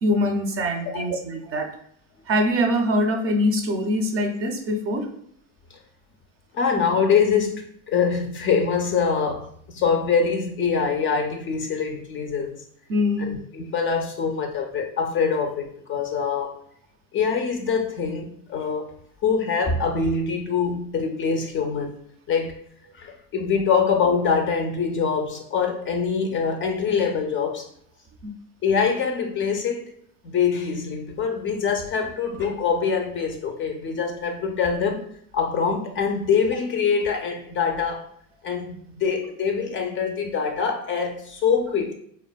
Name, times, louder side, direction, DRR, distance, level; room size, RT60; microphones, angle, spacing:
voice 1, 0.0-1.7 2.3-5.2 12.9-13.4 28.2-28.3, left 1 dB, 40° right, 4 dB, 0.5 m, -23 dB
voice 2, 6.5-12.6 13.2-16.5 17.1-18.9 19.2-22.0 22.3-22.5 22.9-27.6 28.6-29.9 30.2-35.1 35.3-38.1 38.4-41.9, left 6 dB, 35° left, 3 dB, 0.4 m, -24 dB
3.3 x 2.1 x 2.2 m, 0.66 s
supercardioid pair, 100°, 37 cm